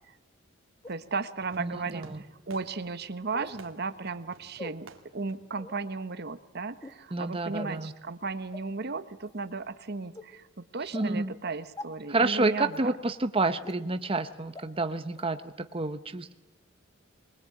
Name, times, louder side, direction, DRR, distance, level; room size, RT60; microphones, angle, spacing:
sound 1, 0.8-0.9 1.8-1.9 3.3-3.6 4.6-4.7 5.5-5.8 6.7-7.0 7.6-7.8 8.5-8.6 9.2-9.4 10.2-10.3 10.9-11.1 11.8-11.9 12.7-12.8 13.6-13.7 14.6-14.7 15.2-15.3, left 1 dB, 20° left, 1.4 m, -42 dB
voice 1, 0.9-2.0 2.5-12.9, right 4 dB, 55° right, 11 dB, 1.2 m, -35 dB
Fireworks, 1.4-6.4, right 3 dB, 80° right, 2.5 m, -54 dB
voice 2, 1.6-2.2 7.1-7.9 10.8-11.3 12.1-16.3, right 3 dB, 25° right, 9 dB, 0.9 m, -29 dB
23.0 x 21.0 x 8.8 m, 1.0 s
head